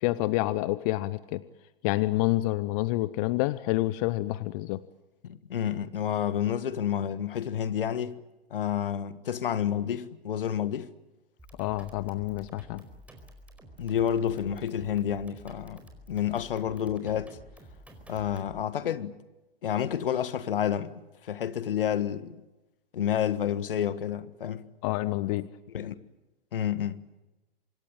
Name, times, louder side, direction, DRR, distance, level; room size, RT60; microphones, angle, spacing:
voice 1, 0.0-1.4 1.8-4.8 11.6-12.8 24.8-25.5, left 18 dB, 35° left, 0.9 m, -28 dB
voice 2, 5.2-8.2 8.5-10.9 13.8-15.8 16.1-17.4 18.1-19.1 19.6-20.9 21.2-22.4 22.9-24.6 25.7-25.9 26.5-27.0, left 9 dB, 65° left, 1.7 m, -29 dB
sound 1, 11.4-18.6, right 1 dB, 5° right, 4.7 m, -51 dB
26.0 x 22.0 x 8.8 m
figure-of-eight pair, 105°, 30 cm